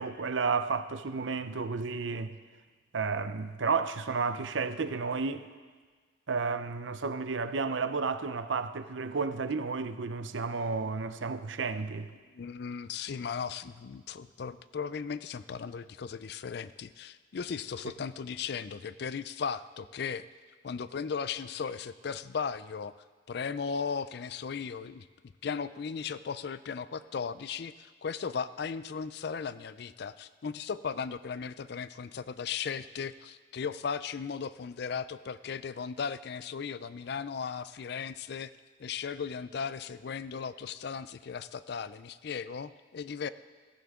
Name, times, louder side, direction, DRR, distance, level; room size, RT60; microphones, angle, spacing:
voice 1, 0.0-2.4 2.9-5.4 6.3-12.1, right 4 dB, 75° right, 0.7 m, -32 dB
voice 2, 12.3-20.3 20.6-22.9 23.3-25.1 25.4-38.5 38.8-43.3, left 6 dB, 55° left, 0.4 m, -36 dB
16.0 x 14.5 x 3.7 m
head